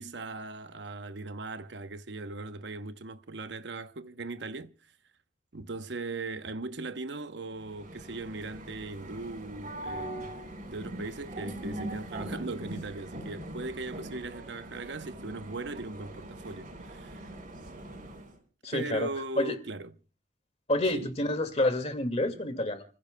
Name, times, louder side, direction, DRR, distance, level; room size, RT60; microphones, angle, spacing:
voice 1, 0.0-4.7 5.5-10.3 10.7-17.2 18.7-19.9 20.9-21.1, right 3 dB, 70° right, 0.9 m, -39 dB
sound 1, 7.5-18.4, right 1 dB, 50° right, 4.4 m, -42 dB
voice 2, 18.6-19.1 19.4-19.5 20.7-22.8, left 1 dB, 35° left, 2.0 m, -28 dB
30.0 x 15.5 x 2.2 m
head